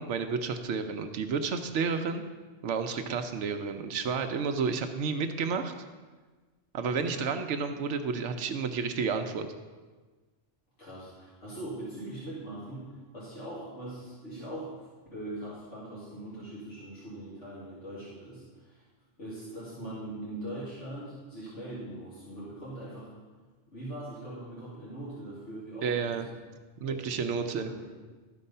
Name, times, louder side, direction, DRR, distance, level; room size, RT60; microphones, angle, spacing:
voice 1, 0.0-2.3 2.6-5.7 6.7-9.5 25.8-26.3 26.8-27.7, right 5 dB, 80° right, 7 dB, 0.9 m, -31 dB
voice 2, 6.8-7.2 10.8-18.9 19.2-23.1 23.7-26.2 26.8-27.9, right 1 dB, 80° left, -9 dB, 2.6 m, -41 dB
12.5 x 4.6 x 5.4 m, 1.3 s
omnidirectional pair, 1.2 m